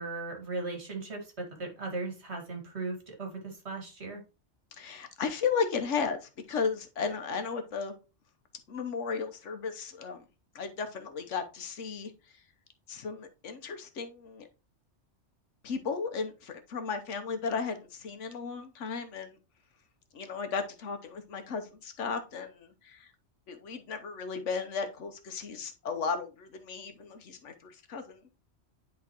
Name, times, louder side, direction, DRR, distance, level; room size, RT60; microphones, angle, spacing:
voice 1, 0.0-4.2, right 3 dB, 65° right, 2 dB, 2.2 m, -37 dB
voice 2, 4.7-7.9 8.7-10.2 10.5-12.4 12.9-14.5 15.6-19.4 20.1-23.1 23.5-28.2, left 5 dB, 80° left, 7 dB, 1.3 m, -35 dB
10.5 x 3.8 x 2.9 m, 0.31 s
omnidirectional pair, 1.2 m